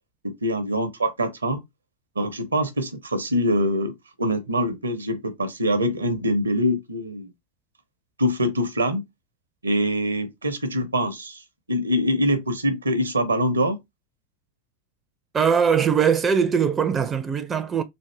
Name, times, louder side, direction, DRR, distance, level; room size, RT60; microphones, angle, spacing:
voice 1, 0.2-1.6 2.2-7.3 8.2-9.0 9.6-11.4 11.7-13.8, equal, 75° right, 0.7 m, -24 dB
voice 2, 15.3-17.8, right 7 dB, 20° right, 0.4 m, -21 dB
3.5 x 2.5 x 3.2 m
figure-of-eight pair, 90°, 0 cm